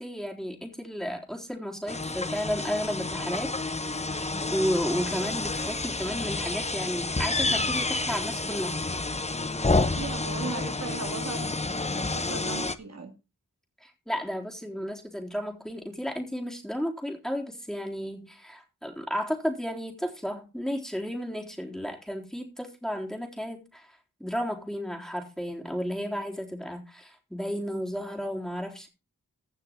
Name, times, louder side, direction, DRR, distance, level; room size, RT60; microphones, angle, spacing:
voice 1, 0.0-3.5 4.5-8.8 9.1-9.2 13.8-23.9 24.2-28.9, equal, ahead, 3.8 m, -33 dB
Bees in Chiloé, 1.9-12.7, left 3 dB, 20° left, 0.9 m, -29 dB
voice 2, 9.5-11.5 12.0-13.1, right 3 dB, 50° right, 2.0 m, -38 dB
16.0 x 6.2 x 4.4 m
wide cardioid pair, 95°, 32 cm